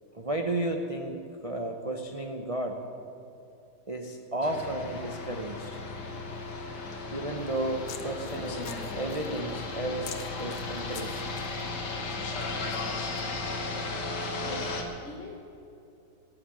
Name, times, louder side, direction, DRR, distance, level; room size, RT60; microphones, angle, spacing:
voice 1, 0.1-2.8 3.9-5.8 7.1-11.2, right 1 dB, 40° right, 3 dB, 0.5 m, -33 dB
sound 1, 4.4-14.8, left 3 dB, 60° left, 2.1 m, -35 dB
sound 2, 7.4-13.3, left 8 dB, 80° left, 1.7 m, -47 dB
voice 2, 14.4-15.4, left 3 dB, 40° left, -1 dB, 1.3 m, -43 dB
16.5 x 7.9 x 9.1 m, 2.6 s
omnidirectional pair, 2.1 m